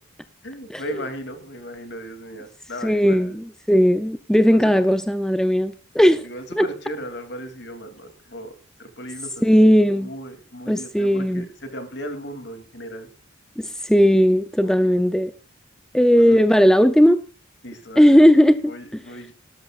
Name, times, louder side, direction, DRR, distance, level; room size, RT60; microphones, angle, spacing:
voice 1, 0.4-3.4 4.4-4.7 6.2-8.5 8.8-9.4 9.9-13.1 14.6-14.9 16.2-16.4 17.6-18.2 18.6-19.3, equal, 55° left, 7 dB, 2.8 m, -36 dB
voice 2, 2.8-6.3 6.6-6.7 9.4-10.1 10.7-11.5 13.6-15.3 15.9-17.2 18.0-18.7, equal, 5° left, 9 dB, 0.5 m, -17 dB
18.0 x 13.0 x 2.4 m, 0.37 s
head